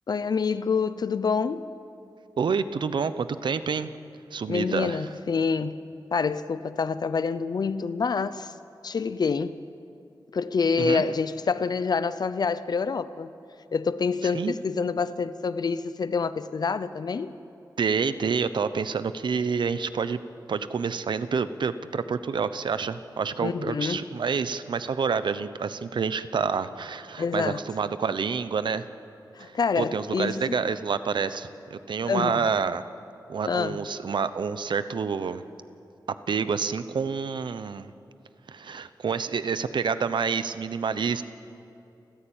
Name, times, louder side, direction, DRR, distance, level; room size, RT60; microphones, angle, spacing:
voice 1, 0.1-1.6 4.5-5.8 6.1-8.6 8.8-9.5 10.3-13.3 13.7-17.3 23.4-24.1 27.2-27.6 29.3-30.6 32.0-32.4 33.5-33.8, left 5 dB, 60° left, 0.7 m, -27 dB
voice 2, 2.4-3.9 4.3-5.0 10.8-11.0 14.3-14.5 17.8-20.2 20.5-28.8 29.4-32.8 33.3-35.4 36.3-37.9 38.5-41.2, right 5 dB, 80° right, 0.9 m, -28 dB
29.0 x 14.5 x 8.9 m
wide cardioid pair, 135°, 8 cm